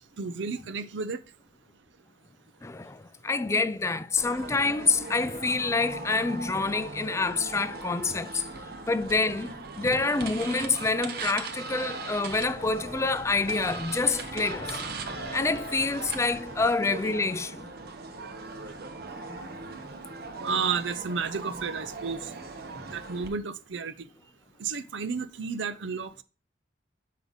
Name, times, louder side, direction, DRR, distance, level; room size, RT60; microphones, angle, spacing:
voice 1, 0.2-1.2 20.4-22.3 22.9-24.1 24.6-26.2, right 5 dB, 85° right, 0.6 m, -32 dB
voice 2, 2.6-8.5 8.9-14.9 15.3-17.7, left 3 dB, 15° left, 0.3 m, -27 dB
sound 1, 4.2-23.3, right 3 dB, 60° right, 0.9 m, -39 dB
sound 2, 11.6-16.8, left 3 dB, 85° left, 0.7 m, -46 dB
sound 3, 12.3-16.7, equal, 15° right, 1.3 m, -48 dB
6.6 x 4.7 x 4.0 m
head